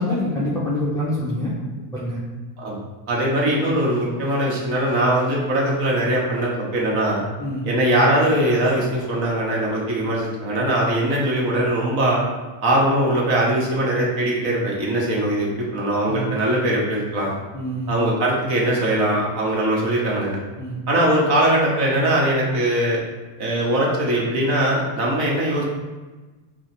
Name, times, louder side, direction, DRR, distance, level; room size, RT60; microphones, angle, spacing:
voice 1, 0.0-1.5 1.9-2.2 7.4-7.6 16.1-16.4 17.5-17.9 20.6-20.8, left 1 dB, 10° left, -8 dB, 0.4 m, -25 dB
voice 2, 3.1-7.2 7.6-12.2 12.6-17.3 17.9-20.4 20.9-23.0 23.4-25.6, right 1 dB, 55° right, -3 dB, 1.4 m, -21 dB
6.1 x 2.4 x 3.0 m, 1.2 s
cardioid pair, 145°, 48 cm